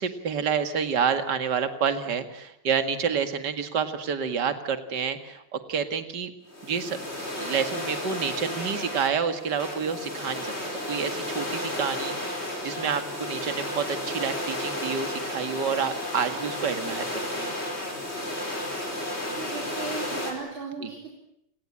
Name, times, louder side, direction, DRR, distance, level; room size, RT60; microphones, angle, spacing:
voice 1, 0.0-6.3 6.6-7.0 7.4-10.5 10.9-17.5 20.8-20.9, right 6 dB, 60° right, 9 dB, 2.6 m, -29 dB
sound 1, 6.5-20.3, left 1 dB, 30° left, 5.7 m, -33 dB
voice 2, 19.3-21.1, right 4 dB, 85° right, 1 dB, 4.9 m, -36 dB
29.0 x 19.5 x 8.8 m, 0.78 s
omnidirectional pair, 2.2 m